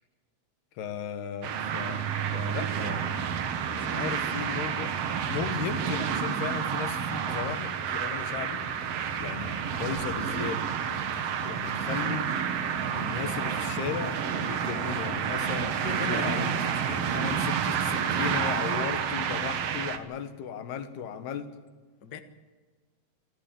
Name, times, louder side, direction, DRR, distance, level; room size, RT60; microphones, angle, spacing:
voice 1, 0.8-2.0 2.3-3.2 3.8-5.0 5.3-7.7 8.0-8.6 9.2-12.3 12.9-15.8 16.1-16.6 17.1-21.5, left 8 dB, 85° left, 3.5 m, -36 dB
sound 1, 1.4-20.0, right 7 dB, 60° right, 1.7 m, -30 dB
voice 2, 15.5-17.2 22.0-22.2, left 7 dB, 65° left, 1.0 m, -40 dB
27.5 x 13.5 x 8.7 m
omnidirectional pair, 4.5 m